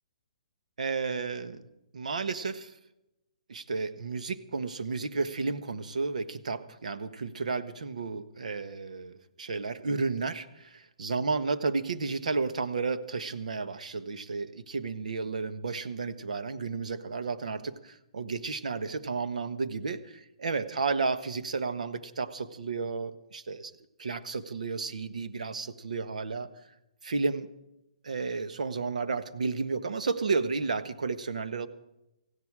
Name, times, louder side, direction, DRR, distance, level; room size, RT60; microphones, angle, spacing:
voice 1, 0.8-1.6 1.9-2.7 3.5-23.7 24.0-26.5 27.0-27.5 28.0-31.7, right 4 dB, 85° right, 11 dB, 1.4 m, -32 dB
18.5 x 16.0 x 4.9 m, 0.89 s
hypercardioid pair, 175°, 4 cm